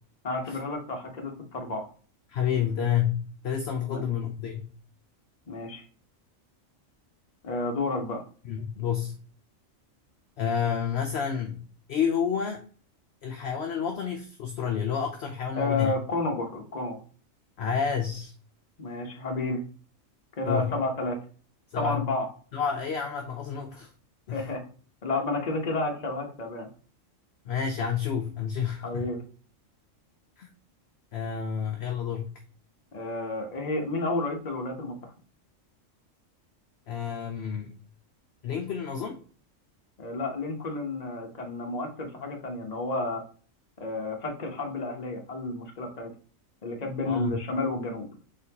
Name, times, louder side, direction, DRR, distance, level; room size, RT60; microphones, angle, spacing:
voice 1, 0.2-1.9 3.8-4.0 5.5-5.8 7.4-8.2 15.6-17.0 18.8-19.6 20.4-21.2 21.8-22.3 24.3-24.6 25.0-26.7 28.8-29.2 32.9-35.0 40.0-43.2 43.8-46.1 46.6-48.1, left 2 dB, 35° left, 2 dB, 1.0 m, -31 dB
voice 2, 2.3-4.7 8.4-9.1 10.4-11.6 11.9-12.6 13.2-15.9 17.6-18.3 20.5-20.7 21.7-22.1 22.5-23.9 24.3-24.5 27.5-29.1 30.4-30.5 31.1-32.3 36.9-37.8 38.4-39.2 47.0-47.4, left 7 dB, 60° left, 4 dB, 0.8 m, -29 dB
4.1 x 3.7 x 2.8 m, 0.41 s
omnidirectional pair, 1.4 m